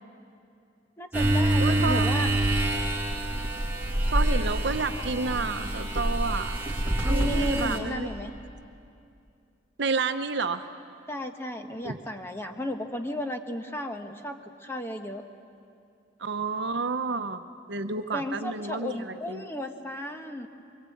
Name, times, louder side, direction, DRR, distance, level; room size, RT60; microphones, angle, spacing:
voice 1, 1.0-2.3 7.0-8.3 11.1-15.2 18.1-20.5, left 1 dB, 15° left, 5 dB, 1.2 m, -34 dB
sound 1, 1.1-7.8, right 1 dB, 10° right, 2.9 m, -26 dB
voice 2, 1.6-2.1 4.1-6.6 7.1-8.1 9.8-10.7 11.8-12.0 16.2-17.4 17.7-19.4, right 4 dB, 65° right, 8 dB, 0.9 m, -30 dB
23.5 x 23.0 x 8.6 m, 2.5 s
head